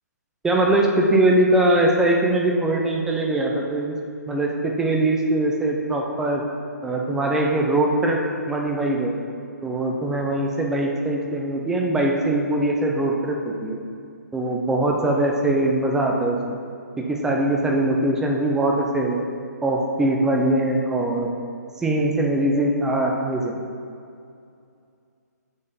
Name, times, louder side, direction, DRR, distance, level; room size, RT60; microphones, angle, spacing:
voice 1, 0.4-4.0 4.3-6.4 6.8-8.2 8.5-9.1 9.6-13.8 14.3-16.6 17.0-19.2 19.6-21.3 21.8-23.5, right 1 dB, 5° right, 0 dB, 0.6 m, -21 dB
8.3 x 4.4 x 5.3 m, 2.4 s
hypercardioid pair, 150°, 10 cm